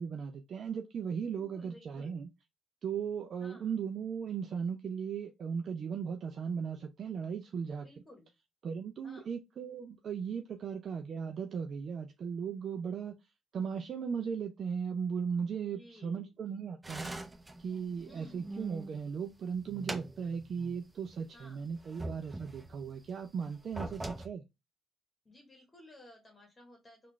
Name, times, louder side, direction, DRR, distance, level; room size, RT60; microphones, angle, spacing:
voice 1, 0.0-2.3 2.8-7.8 8.6-13.1 13.5-17.1 17.6-24.4, right 6 dB, 55° right, 0.4 m, -37 dB
voice 2, 1.2-2.2 3.4-3.7 7.8-8.3 9.0-9.3 15.7-16.3 18.1-18.5 21.3-21.7 23.7-24.0 25.2-27.1, left 1 dB, 25° left, 1.2 m, -56 dB
sound 1, 16.8-19.0 19.4-20.8 21.1-21.2 21.7-22.9 23.5-24.3, right 2 dB, 20° right, 0.7 m, -43 dB
3.7 x 2.4 x 3.1 m
cardioid pair, 90°, 0 cm